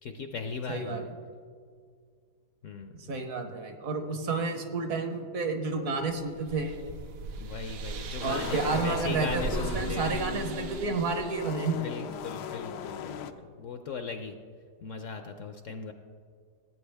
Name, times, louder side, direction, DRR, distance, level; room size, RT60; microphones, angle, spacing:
voice 1, 0.0-1.1 2.6-2.9 7.4-10.1 11.7-14.4 14.8-15.9, left 5 dB, 65° left, 6 dB, 0.8 m, -38 dB
voice 2, 0.7-1.0 3.1-6.8 8.2-11.8, right 4 dB, 60° right, 6 dB, 1.3 m, -30 dB
sound 1, 6.0-11.4, right 3 dB, 90° right, 1.4 m, -38 dB
sound 2, 8.2-13.3, left 8 dB, 90° left, 1.2 m, -38 dB
17.0 x 8.5 x 3.4 m, 2.1 s
omnidirectional pair, 1.7 m